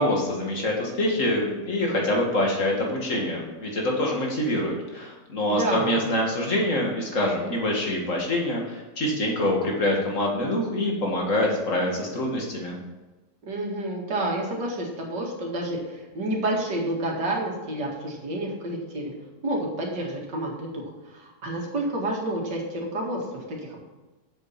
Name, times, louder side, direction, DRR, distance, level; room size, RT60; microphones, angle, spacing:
voice 1, 0.0-12.8, left 1 dB, 45° left, -1 dB, 2.4 m, -25 dB
voice 2, 5.5-6.0 13.4-19.1 19.4-23.8, right 1 dB, 75° right, -1 dB, 2.6 m, -29 dB
7.7 x 7.0 x 5.8 m, 1.1 s
omnidirectional pair, 1.9 m